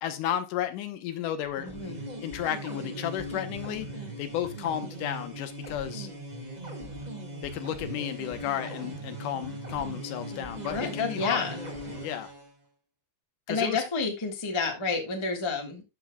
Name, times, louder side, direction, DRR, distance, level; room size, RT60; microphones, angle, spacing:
voice 1, 0.0-1.7 2.2-6.1 7.4-11.5 12.0-12.3 13.5-13.8, left 11 dB, 85° left, 9 dB, 2.5 m, -33 dB
sound 1, 1.5-12.5, right 1 dB, 20° right, 1.1 m, -39 dB
voice 2, 1.6-2.0 10.7-11.6 13.5-15.8, left 4 dB, 30° left, 2 dB, 0.5 m, -30 dB
12.0 x 6.3 x 2.3 m, 0.23 s
omnidirectional pair, 3.6 m